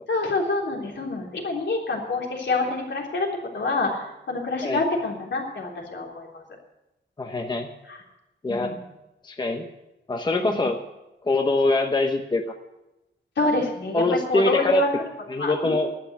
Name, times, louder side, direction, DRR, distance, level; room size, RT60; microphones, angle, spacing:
voice 1, 0.1-3.3 3.5-6.4 7.9-8.0 8.5-8.8 10.4-10.7 13.3-14.0 14.3-15.1 15.4-15.9, left 3 dB, 75° left, -1 dB, 3.5 m, -27 dB
voice 2, 7.2-7.7 8.4-8.7 9.2-9.6 10.1-10.8 11.2-12.4 13.9-14.8 15.3-15.9, left 2 dB, 25° left, 4 dB, 0.9 m, -23 dB
12.0 x 9.6 x 9.2 m, 0.96 s
wide cardioid pair, 175°, 19 cm